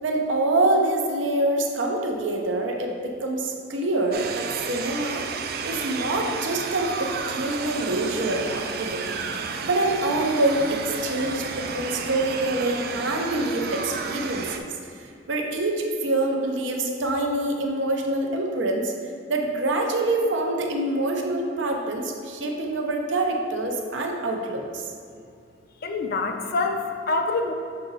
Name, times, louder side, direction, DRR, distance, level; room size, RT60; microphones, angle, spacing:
voice 1, 0.0-5.2 5.6-9.2 9.6-14.6 15.3-18.9 19.3-24.9, right 2 dB, 80° right, 1 dB, 0.8 m, -25 dB
sound 1, 4.1-14.6, right 5 dB, 55° right, 0.4 m, -32 dB
voice 2, 25.8-27.5, left 3 dB, 55° left, 5 dB, 0.5 m, -26 dB
6.6 x 3.9 x 4.0 m, 2.4 s
head